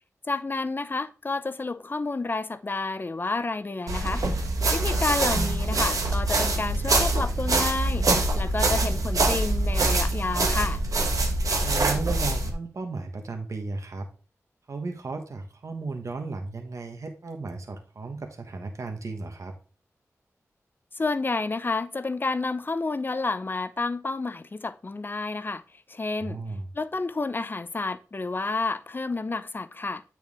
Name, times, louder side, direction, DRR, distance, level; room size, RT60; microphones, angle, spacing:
voice 1, 0.3-4.2 4.7-8.1 8.3-10.8 21.0-25.6 25.9-26.4 26.7-30.0, left 3 dB, 40° left, 0.6 m, -30 dB
sound 1, 3.9-12.5, right 2 dB, 85° right, 1.3 m, -24 dB
voice 2, 11.6-14.1 14.7-19.5 26.2-26.7, right 3 dB, 65° right, 1.3 m, -35 dB
8.7 x 4.5 x 3.6 m
wide cardioid pair, 70°, 6 cm